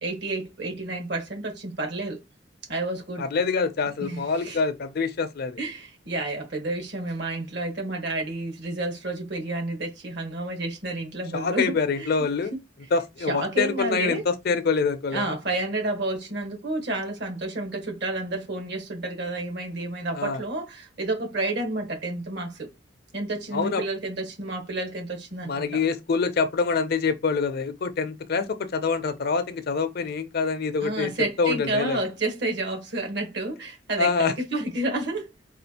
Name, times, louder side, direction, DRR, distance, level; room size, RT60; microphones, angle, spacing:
voice 1, 0.0-2.2 2.7-3.2 4.0-4.6 5.6-12.1 13.3-14.2 15.1-22.7 23.1-25.8 30.8-35.3, right 2 dB, 65° right, 1.3 m, -30 dB
voice 2, 3.2-5.6 11.3-12.5 12.9-15.3 20.1-20.4 23.5-23.8 25.5-31.1 31.4-32.0 34.0-34.3, left 5 dB, 55° left, 0.5 m, -25 dB
4.1 x 2.4 x 2.8 m
head